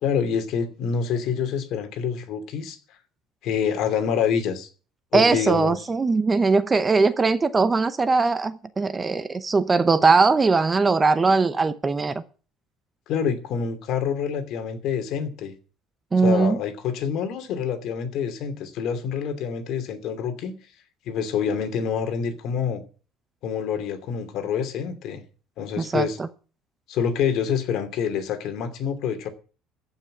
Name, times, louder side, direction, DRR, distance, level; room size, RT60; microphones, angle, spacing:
voice 1, 0.0-2.8 3.4-4.7 5.1-5.8 13.1-15.5 16.2-20.5 21.1-22.8 23.4-25.2 25.6-26.2 26.9-29.3, left 7 dB, 55° left, 2.7 m, -26 dB
voice 2, 5.1-12.1 16.1-16.6 25.8-26.1, right 4 dB, 15° right, 0.7 m, -20 dB
14.5 x 5.9 x 9.7 m
cardioid pair, 155°, 0 cm